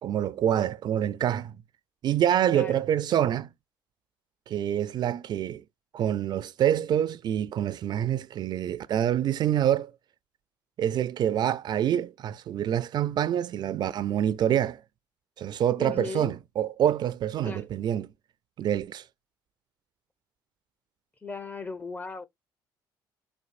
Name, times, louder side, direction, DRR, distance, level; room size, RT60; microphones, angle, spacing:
voice 1, 0.0-1.6 2.0-3.5 4.5-5.6 5.9-9.9 10.8-14.8 15.4-18.1 18.6-19.0, right 10 dB, 55° right, 0.3 m, -26 dB
voice 2, 2.5-2.8 15.8-16.3 17.4-17.6 21.2-22.3, left 4 dB, 20° left, 0.6 m, -37 dB
4.2 x 2.5 x 2.4 m
supercardioid pair, 85°, 9 cm